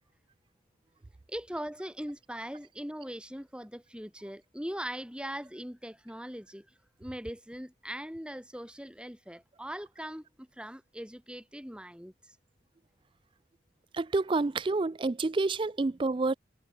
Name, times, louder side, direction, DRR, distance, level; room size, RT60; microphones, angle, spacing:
voice 1, 1.3-6.7 7.0-12.4, equal, 5° right, 7.5 m, -40 dB
voice 2, 13.9-16.3, right 3 dB, 25° right, 0.4 m, -28 dB
head